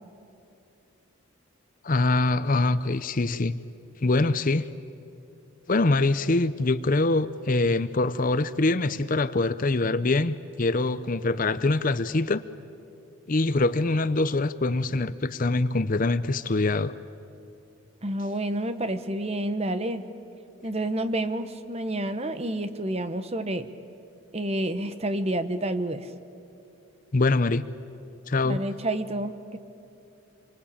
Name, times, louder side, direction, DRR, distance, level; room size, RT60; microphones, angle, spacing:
voice 1, 1.8-3.6 4.0-4.7 5.7-12.4 13.3-16.9 27.1-27.6 28.3-28.6, left 2 dB, 40° left, 0.6 m, -24 dB
voice 2, 18.0-20.1 20.6-23.7 24.3-26.1 28.4-29.6, right 1 dB, 30° right, 1.1 m, -29 dB
27.5 x 24.5 x 8.7 m
head